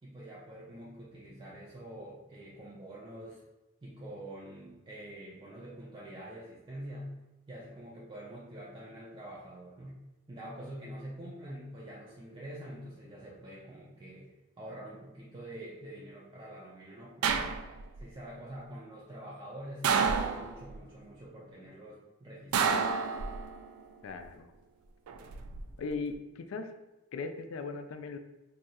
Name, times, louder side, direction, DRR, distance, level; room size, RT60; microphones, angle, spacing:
voice 1, 0.0-3.4 3.8-7.2 7.5-10.0 10.3-17.6 18.0-23.1, right 1 dB, 25° right, -6 dB, 0.4 m, -46 dB
sound 1, 17.2-18.0 19.8-20.8 22.5-23.7 25.1-25.6, right 5 dB, 85° right, 0.3 m, -29 dB
voice 2, 24.0-24.5 25.8-26.7 27.1-28.2, left 4 dB, 70° left, 7 dB, 0.3 m, -38 dB
2.7 x 2.4 x 4.1 m, 0.99 s
head